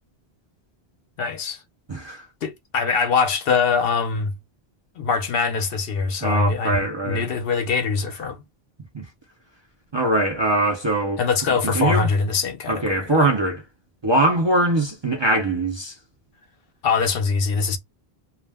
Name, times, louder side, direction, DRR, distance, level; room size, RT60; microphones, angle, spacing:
voice 1, 1.2-1.6 2.4-4.3 5.0-8.4 11.2-13.3 16.8-17.8, left 5 dB, 70° left, 0.8 m, -23 dB
voice 2, 1.9-2.2 6.2-7.3 8.9-9.0 9.9-11.2 11.7-12.1 12.7-13.6 14.0-15.9, right 2 dB, 35° right, 0.5 m, -22 dB
2.3 x 2.1 x 3.3 m
omnidirectional pair, 1.1 m